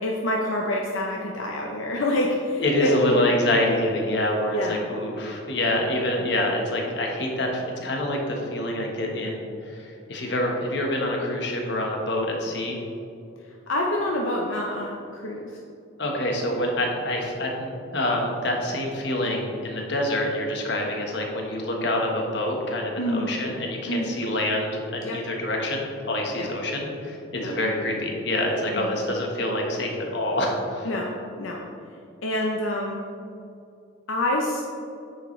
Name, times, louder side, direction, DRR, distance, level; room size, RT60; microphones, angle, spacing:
voice 1, 0.0-3.4 4.5-4.8 13.7-15.5 23.0-23.3 23.9-24.1 25.0-25.2 26.4-26.5 27.4-27.5 28.7-28.9 30.8-31.6 32.2-33.0 34.1-34.6, left 1 dB, 80° left, -1 dB, 0.7 m, -27 dB
voice 2, 2.6-12.8 16.0-30.9, left 1 dB, 60° left, 0 dB, 1.3 m, -26 dB
9.1 x 6.7 x 3.2 m, 2.6 s
head